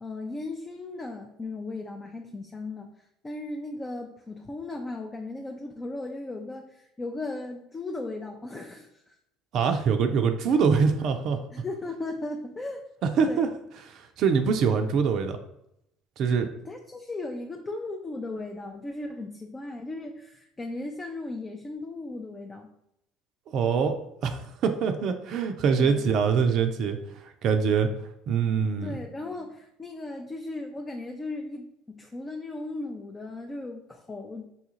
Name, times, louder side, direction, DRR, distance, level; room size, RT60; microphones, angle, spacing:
voice 1, 0.0-9.2 11.5-12.8 13.2-13.5 16.6-22.7 25.7-26.0 28.8-34.5, left 2 dB, 25° left, 2 dB, 0.5 m, -37 dB
voice 2, 9.5-11.4 13.0-13.5 13.9-15.4 16.2-16.5 23.5-24.0 24.2-27.9 28.3-29.0, right 6 dB, 55° right, 6 dB, 0.4 m, -24 dB
5.5 x 2.3 x 2.9 m, 0.81 s
hypercardioid pair, 65°, 0 cm